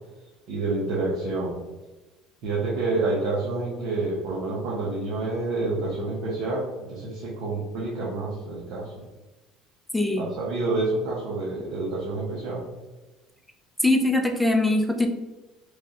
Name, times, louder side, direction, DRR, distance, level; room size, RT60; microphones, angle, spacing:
voice 1, 0.5-1.5 2.4-9.0 10.2-12.6, right 3 dB, 70° right, -5 dB, 0.9 m, -28 dB
voice 2, 9.9-10.3 13.8-15.1, left 2 dB, 5° left, 3 dB, 0.5 m, -22 dB
3.2 x 2.5 x 4.1 m, 1.1 s
cardioid pair, 120°, 0 cm